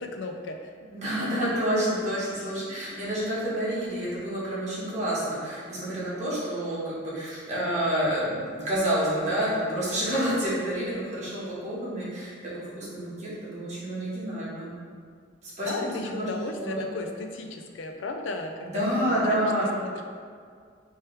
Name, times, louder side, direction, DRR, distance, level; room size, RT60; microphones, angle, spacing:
voice 1, 0.0-0.9 15.6-19.5 19.8-20.0, left 3 dB, 75° left, 4 dB, 0.4 m, -35 dB
voice 2, 0.9-14.7 15.4-16.9 18.6-19.7, equal, 35° right, -8 dB, 1.2 m, -29 dB
3.3 x 3.0 x 4.5 m, 2.1 s
head